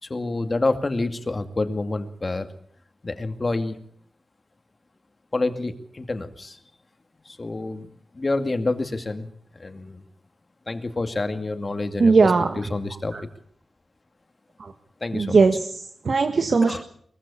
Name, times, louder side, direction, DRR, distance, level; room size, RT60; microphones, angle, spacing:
voice 1, 0.0-2.5 3.0-3.8 5.3-6.6 7.3-9.3 9.5-10.0 10.7-12.1 12.7-13.1 15.0-15.3 16.6-16.8, left 2 dB, 40° left, 8 dB, 2.4 m, -28 dB
voice 2, 12.0-12.7 13.1-13.2 14.6-14.7 15.1-16.8, right 4 dB, 65° right, 6 dB, 1.7 m, -20 dB
22.5 x 15.5 x 8.6 m, 0.63 s
cardioid pair, 65°, 0 cm